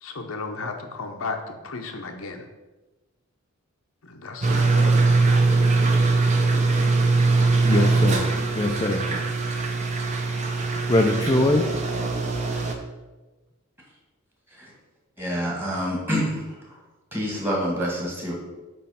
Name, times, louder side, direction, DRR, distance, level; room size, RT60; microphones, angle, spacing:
voice 1, 0.0-2.5 4.0-4.6, left 3 dB, 65° left, 4 dB, 0.7 m, -34 dB
sound 1, 4.4-12.7, right 3 dB, 30° right, 0.7 m, -21 dB
voice 2, 7.6-9.1 10.9-11.7, left 1 dB, 20° left, 1 dB, 0.4 m, -22 dB
voice 3, 15.2-16.4 17.1-18.3, equal, 10° right, -3 dB, 1.6 m, -26 dB
8.5 x 3.1 x 5.6 m, 1.2 s
head